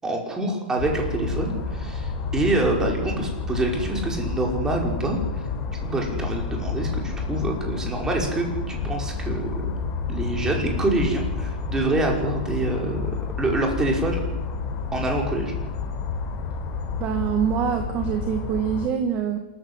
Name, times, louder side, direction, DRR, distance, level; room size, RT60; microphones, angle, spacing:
voice 1, 0.0-9.7 10.1-14.2 14.9-15.5, right 2 dB, 10° right, 1 dB, 5.4 m, -26 dB
sound 1, 0.8-18.9, left 4 dB, 25° left, 4.4 m, -30 dB
voice 2, 17.0-19.4, right 8 dB, 25° right, 6 dB, 1.9 m, -25 dB
27.5 x 14.5 x 8.2 m, 1.1 s
hypercardioid pair, 150°, 6 cm